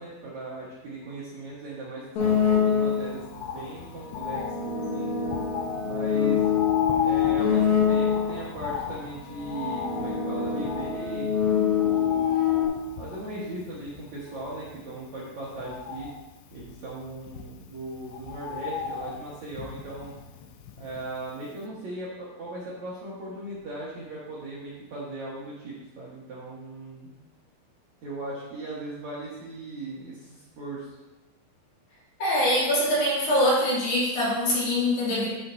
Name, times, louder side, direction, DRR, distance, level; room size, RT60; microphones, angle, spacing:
voice 1, 0.0-5.1 5.8-6.5 7.0-11.4 11.8-12.3 13.0-16.1 16.5-20.2 20.8-27.1 28.0-31.0, right 2 dB, 75° right, -8 dB, 1.6 m, -38 dB
Bird, 2.2-21.3 21.6-21.7, left 7 dB, 85° left, 2.4 m, -37 dB
sound 1, 2.2-3.2 4.0-8.5 9.2-12.7, left 8 dB, 70° left, 2.2 m, -25 dB
voice 2, 32.2-35.3, left 1 dB, 50° left, -8 dB, 4.1 m, -23 dB
14.0 x 6.0 x 2.7 m, 1.1 s
omnidirectional pair, 5.6 m